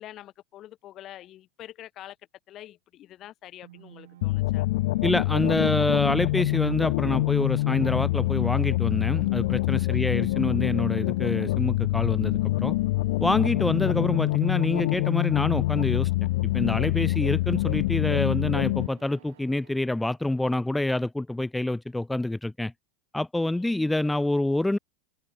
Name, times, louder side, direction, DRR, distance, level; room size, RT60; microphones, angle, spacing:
voice 1, 0.0-2.2 2.5-4.7 9.9-10.3 23.5-23.9, left 13 dB, 35° left, 6.0 m, -46 dB
sound 1, 3.6-20.4, right 14 dB, 80° right, 7.3 m, -55 dB
sound 2, 4.2-18.9, left 19 dB, 70° left, 0.7 m, -25 dB
voice 2, 5.0-12.8 13.2-16.1 16.4-22.7 23.1-24.8, left 1 dB, 5° left, 0.7 m, -27 dB
supercardioid pair, 135°, 0 cm